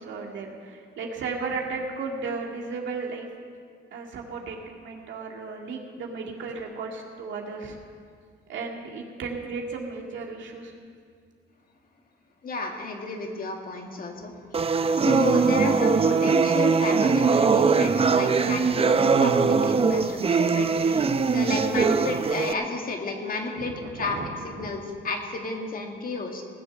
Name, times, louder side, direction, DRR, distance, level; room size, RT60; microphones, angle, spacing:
voice 1, 0.0-3.3 3.9-7.8 8.5-10.7 21.8-21.9 23.5-24.3 24.5-24.7, right 4 dB, 70° right, 0 dB, 2.1 m, -35 dB
voice 2, 12.4-14.7 14.9-24.2 24.4-26.4, left 3 dB, 45° left, 2 dB, 2.0 m, -32 dB
sound 1, 14.5-22.5, right 5 dB, 30° right, 0.6 m, -21 dB
19.0 x 6.9 x 7.0 m, 2.1 s
cardioid pair, 90°, 20 cm